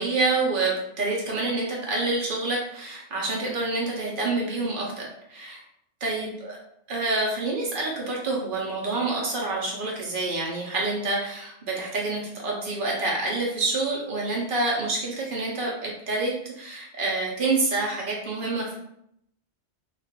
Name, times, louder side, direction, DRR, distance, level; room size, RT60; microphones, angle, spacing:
voice 1, 0.0-5.6 6.0-6.6 6.9-18.8, right 3 dB, 55° right, -3 dB, 0.8 m, -27 dB
2.4 x 2.3 x 3.5 m, 0.75 s
omnidirectional pair, 1.2 m